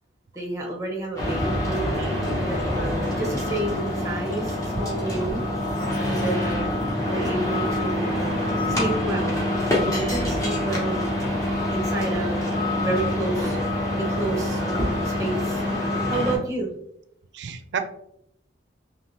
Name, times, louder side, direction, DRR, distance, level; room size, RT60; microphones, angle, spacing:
voice 1, 0.3-5.4 6.0-8.3 8.8-9.4 9.7-11.0 11.7-12.4 12.8-13.6 14.0-15.6 16.0-16.7, right 2 dB, 15° right, 0 dB, 0.8 m, -30 dB
sound 1, 1.2-16.4, left 1 dB, 15° left, 0.8 m, -25 dB
voice 2, 17.3-17.8, right 6 dB, 65° right, 9 dB, 0.4 m, -32 dB
3.5 x 2.8 x 2.7 m, 0.75 s
head